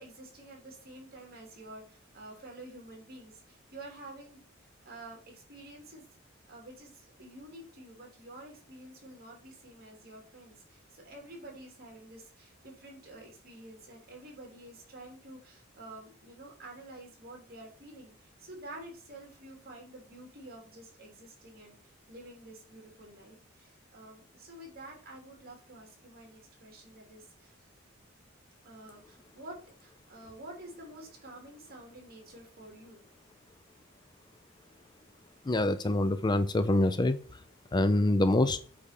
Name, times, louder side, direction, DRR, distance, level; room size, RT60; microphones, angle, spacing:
voice 1, 0.0-4.4 4.8-6.0 6.5-27.6 28.6-33.0, right 1 dB, 50° right, 0 dB, 3.3 m, -49 dB
voice 2, 35.5-37.2 37.7-38.6, left 2 dB, 20° left, 12 dB, 0.4 m, -25 dB
8.4 x 4.3 x 5.2 m, 0.41 s
head